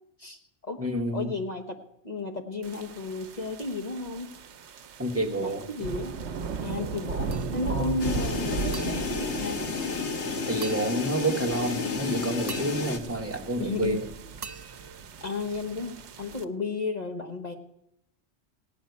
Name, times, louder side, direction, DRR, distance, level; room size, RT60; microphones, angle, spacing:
voice 1, 0.2-0.8 1.1-4.3 5.4-6.2 6.6-9.6 13.6-14.0 15.2-17.5, left 3 dB, 40° left, 4 dB, 1.1 m, -33 dB
voice 2, 0.8-1.3 5.0-5.7 7.7-7.9 10.5-14.1, right 1 dB, 10° right, 2 dB, 1.4 m, -29 dB
sound 1, 2.6-16.4, right 4 dB, 75° right, 1.1 m, -37 dB
sound 2, 7.3-7.9 8.7-10.2 10.6-11.6 12.5-14.0 14.4-15.8, right 5 dB, 35° right, 0.4 m, -45 dB
sound 3, 8.0-13.0, left 5 dB, 75° left, 1.5 m, -31 dB
16.5 x 6.3 x 9.3 m, 0.82 s
omnidirectional pair, 1.2 m